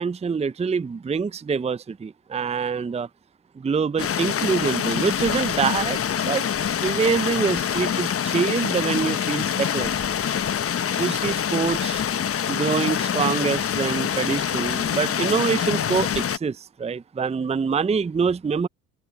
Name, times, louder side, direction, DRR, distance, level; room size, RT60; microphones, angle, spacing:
voice 1, 0.0-3.1 3.6-6.4 6.8-9.9 11.0-12.0 12.5-18.7, right 5 dB, 15° right, 0.7 m, -25 dB
sound 1, 4.0-16.4, left 8 dB, 30° left, 1.1 m, -25 dB
open air
hypercardioid pair, 60°, 45 cm